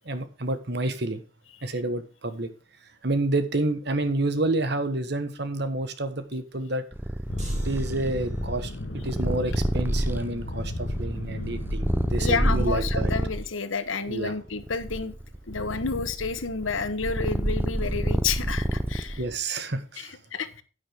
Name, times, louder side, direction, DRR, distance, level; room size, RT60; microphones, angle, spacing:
voice 1, 0.0-1.2 1.6-2.5 3.0-6.8 7.6-13.1 14.1-14.3 19.2-20.2, right 2 dB, 55° right, 10 dB, 1.3 m, -29 dB
Purr, 6.9-13.4 14.1-19.3, right 1 dB, 10° right, 0.6 m, -29 dB
sound 1, 7.3-12.6, left 1 dB, 65° left, 1.6 m, -34 dB
sound 2, 7.4-8.7, right 2 dB, 35° right, 4.2 m, -48 dB
voice 2, 12.2-15.1 15.5-19.2 20.0-20.6, left 5 dB, 80° left, 12 dB, 1.1 m, -30 dB
9.8 x 8.9 x 3.6 m, 0.33 s
head